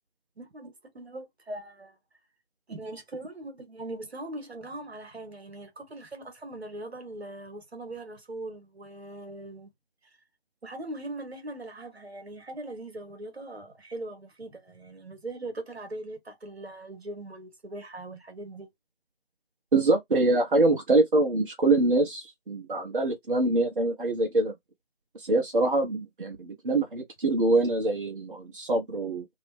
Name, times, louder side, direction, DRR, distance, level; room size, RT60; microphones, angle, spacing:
voice 1, 0.4-2.0 2.7-9.7 10.6-18.7, right 2 dB, 70° right, 1.4 m, -40 dB
voice 2, 19.7-24.5 25.1-29.2, right 2 dB, 55° right, 1.0 m, -24 dB
2.8 x 2.1 x 3.3 m
figure-of-eight pair, 155°, 32 cm